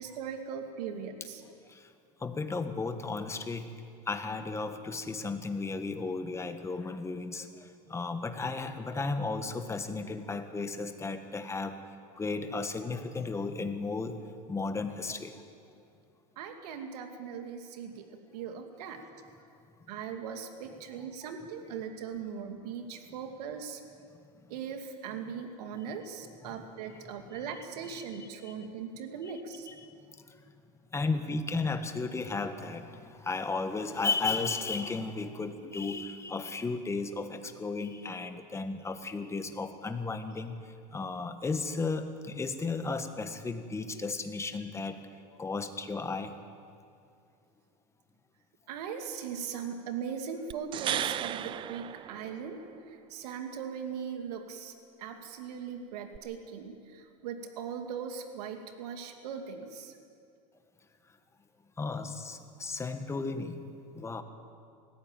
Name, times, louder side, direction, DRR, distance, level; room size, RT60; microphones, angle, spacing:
voice 1, 0.0-1.4 16.4-18.1 18.3-19.0 19.9-23.8 24.5-29.7 48.7-52.6 52.9-54.7 55.0-60.0, right 7 dB, 80° right, 5 dB, 2.3 m, -39 dB
voice 2, 2.2-3.7 4.1-7.4 7.9-11.7 12.2-14.1 14.5-15.3 29.7-29.8 30.9-33.0 33.2-40.5 40.9-45.0 45.4-46.3 61.8-63.6 63.9-64.2, left 3 dB, 15° left, 8 dB, 1.4 m, -34 dB
sound 1, 50.5-52.8 56.1-56.2, right 11 dB, 25° right, 0.4 m, -35 dB
19.0 x 15.0 x 9.0 m, 2.4 s
supercardioid pair, 130°, 20 cm